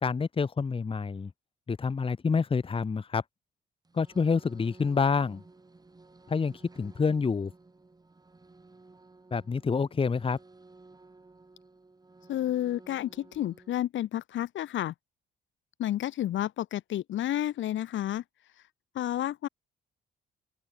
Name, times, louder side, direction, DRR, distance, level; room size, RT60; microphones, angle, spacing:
voice 1, 0.0-1.3 1.7-3.2 3.9-5.4 6.3-7.5 9.3-10.4, left 5 dB, 25° left, 1.0 m, -27 dB
sound 1, 3.8-13.8, right 3 dB, 20° right, 2.6 m, -55 dB
voice 2, 12.3-14.9 15.8-18.2 18.9-19.5, left 12 dB, 75° left, 1.5 m, -30 dB
open air
cardioid pair, 90°, 20 cm